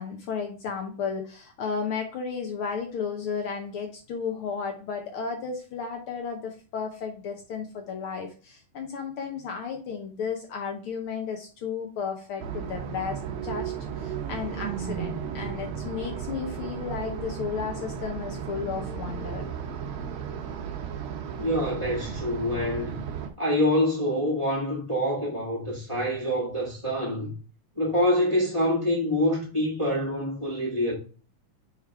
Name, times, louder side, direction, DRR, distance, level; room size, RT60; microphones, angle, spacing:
voice 1, 0.0-19.5, left 6 dB, 75° left, 1.2 m, -33 dB
sound 1, 12.4-23.3, right 8 dB, 90° right, 1.1 m, -35 dB
sound 2, 13.7-17.7, right 6 dB, 65° right, 1.6 m, -40 dB
voice 2, 21.4-22.9 23.4-27.3 27.7-30.9, left 1 dB, 15° left, 1.1 m, -26 dB
5.0 x 4.9 x 4.7 m
omnidirectional pair, 3.4 m